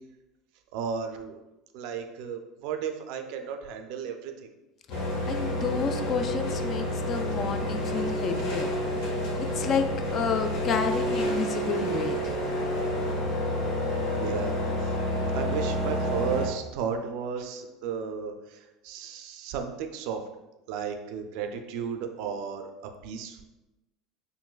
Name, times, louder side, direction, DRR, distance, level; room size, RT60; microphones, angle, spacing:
voice 1, 0.7-1.4 1.7-4.5 14.2-14.6 15.3-20.2 20.7-22.7 23.0-23.4, right 6 dB, 70° right, 6 dB, 0.4 m, -34 dB
sound 1, 4.9-16.5, equal, 70° left, 0.9 m, -29 dB
voice 2, 5.3-8.7 9.4-9.9 10.1-12.4, left 6 dB, 45° left, 7 dB, 0.3 m, -30 dB
3.8 x 2.6 x 2.3 m, 1.0 s
hypercardioid pair, 90°, 0 cm